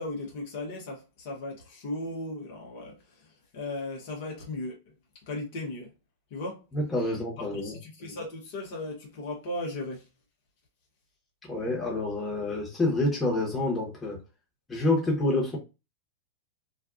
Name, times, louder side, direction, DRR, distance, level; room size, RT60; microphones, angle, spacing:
voice 1, 0.0-3.3 3.5-4.7 5.3-5.9 6.3-6.6 7.5-10.0, left 2 dB, 55° left, 0.9 m, -36 dB
voice 2, 6.7-7.8 11.4-14.2 14.7-15.6, left 2 dB, 15° left, 1.1 m, -28 dB
2.5 x 2.3 x 2.4 m
figure-of-eight pair, 100°, 0 cm